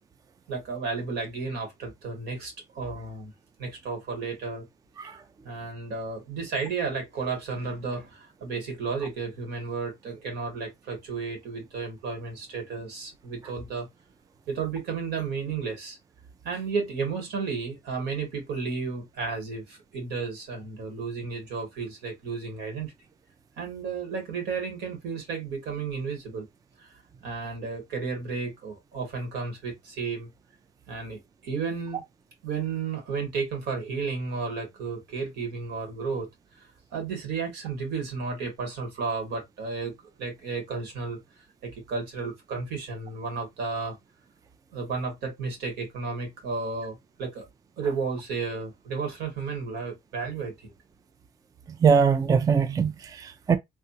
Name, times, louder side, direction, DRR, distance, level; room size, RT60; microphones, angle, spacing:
voice 1, 0.5-3.3 3.6-4.6 5.1-5.2 5.4-13.9 14.5-16.0 16.4-22.9 23.6-26.4 26.8-26.9 27.2-30.3 30.9-32.0 32.4-36.3 36.6-39.9 40.2-41.2 41.6-44.0 44.7-47.4 47.8-50.7, right 4 dB, 80° right, 1.8 m, -33 dB
voice 2, 51.8-53.6, right 6 dB, 20° right, 0.3 m, -21 dB
3.3 x 2.4 x 2.7 m
cardioid pair, 110°, 17 cm